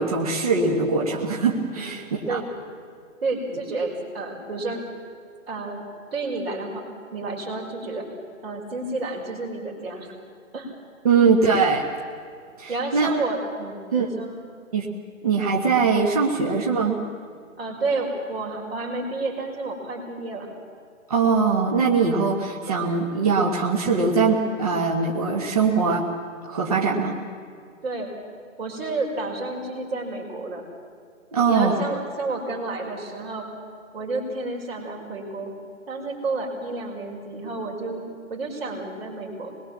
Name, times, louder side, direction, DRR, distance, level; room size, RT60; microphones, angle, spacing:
voice 1, 0.0-2.0 2.3-2.4 11.0-11.8 12.6-13.1 13.9-14.1 14.7-14.9 15.2-17.0 21.1-26.0 26.4-27.1 31.3-31.7, right 5 dB, 25° right, -1 dB, 1.5 m, -21 dB
voice 2, 3.2-4.8 5.5-5.8 6.1-6.8 7.1-8.1 8.4-10.1 10.5-10.7 12.7-14.3 17.6-20.5 27.8-28.1 28.6-30.7 31.5-33.5 33.9-35.5 35.9-38.0 38.3-39.5, right 3 dB, 45° right, -1 dB, 5.3 m, -30 dB
25.0 x 21.0 x 7.3 m, 2.2 s
hypercardioid pair, 175°, 41 cm